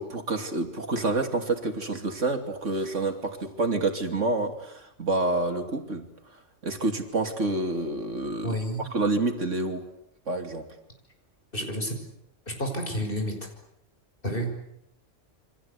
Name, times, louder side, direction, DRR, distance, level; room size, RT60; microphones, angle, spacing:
voice 1, 0.0-6.0 6.6-9.9 10.3-10.7, right 2 dB, 80° right, 5 dB, 3.2 m, -28 dB
voice 2, 8.4-8.9 11.5-12.0 12.5-13.3 14.2-14.7, equal, 45° left, 4 dB, 6.1 m, -30 dB
28.5 x 25.0 x 8.3 m, 0.76 s
omnidirectional pair, 1.3 m